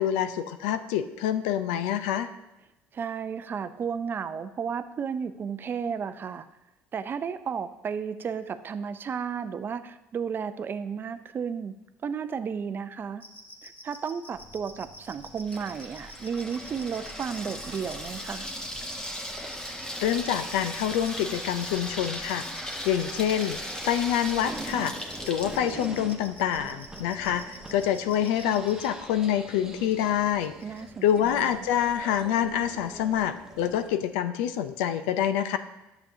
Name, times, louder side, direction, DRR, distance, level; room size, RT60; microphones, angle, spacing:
voice 1, 0.0-2.3 20.0-22.4 22.8-23.6 23.9-24.9 25.3-30.5 31.0-35.6, left 10 dB, 85° left, 10 dB, 0.4 m, -26 dB
voice 2, 2.9-6.5 6.9-11.7 12.0-13.2 13.6-18.5 30.6-31.6, right 6 dB, 40° right, 11 dB, 0.5 m, -33 dB
sound 1, 13.2-28.9 30.3-30.8 31.1-31.5, left 1 dB, 35° left, 2.1 m, -47 dB
Water tap faucet / Sink (filling or washing), 14.3-25.6, equal, 10° left, 1.2 m, -38 dB
sound 2, 16.4-33.9, right 2 dB, 10° right, 1.0 m, -45 dB
10.0 x 6.9 x 2.7 m, 0.96 s
supercardioid pair, 80°, 6 cm